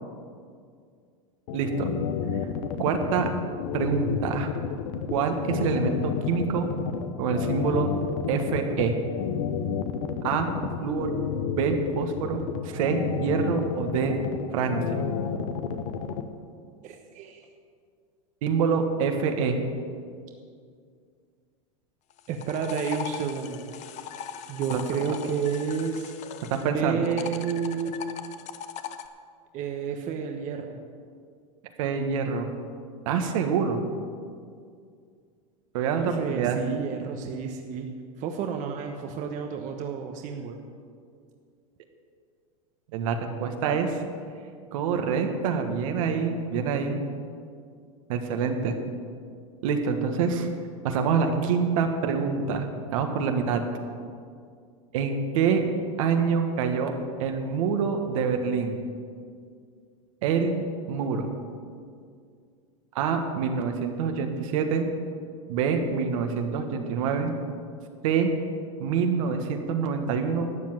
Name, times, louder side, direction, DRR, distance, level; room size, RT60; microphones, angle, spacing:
sound 1, 1.5-16.2, left 7 dB, 65° left, 1.0 m, -30 dB
voice 1, 1.5-1.9 2.8-3.3 3.7-4.5 5.1-6.7 7.2-7.9 8.3-9.0 10.2-10.5 10.8-11.1 11.5-12.4 12.7-14.2 14.5-15.1 18.4-19.6 24.7-24.8 26.6-27.0 31.8-32.5 33.0-33.8 35.7-36.6 42.9-44.0 44.7-47.0 48.1-48.8 49.6-50.5 50.8-53.7 54.9-55.6 56.0-56.9 57.2-58.8 60.2-61.3 62.9-64.9 65.5-67.3 68.0-68.3 68.8-70.5, right 6 dB, 70° right, 5 dB, 1.5 m, -26 dB
voice 2, 16.8-17.4 22.3-23.7 24.5-26.1 26.7-27.9 29.5-30.8 36.0-37.9 38.2-40.6, right 6 dB, 45° right, 4 dB, 1.1 m, -30 dB
sound 2, 22.1-26.7 27.0-29.1, left 8 dB, 40° left, 0.8 m, -39 dB
12.5 x 7.6 x 7.6 m, 2.2 s
hypercardioid pair, 115°, 18 cm